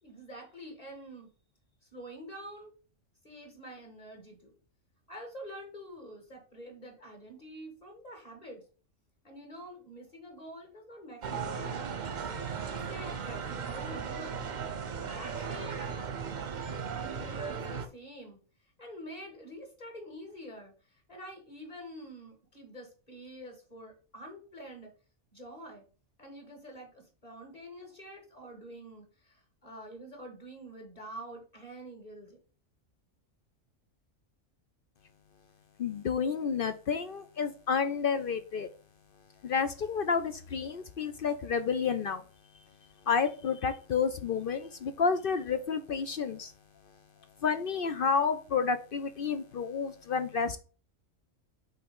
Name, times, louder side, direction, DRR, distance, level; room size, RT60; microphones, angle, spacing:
voice 1, 0.0-1.3 1.9-2.7 3.2-4.5 5.1-8.6 9.2-11.9 12.6-14.5 14.9-15.8 17.0-18.4 18.8-24.9 25.3-25.8 26.2-32.4, equal, 30° left, 2.3 m, -47 dB
sound 1, 11.2-17.9, right 6 dB, 40° right, 0.8 m, -36 dB
voice 2, 35.8-38.7 39.4-42.2 43.1-46.5 47.4-50.6, left 6 dB, 55° left, 0.7 m, -30 dB
5.6 x 4.0 x 5.4 m
omnidirectional pair, 1.3 m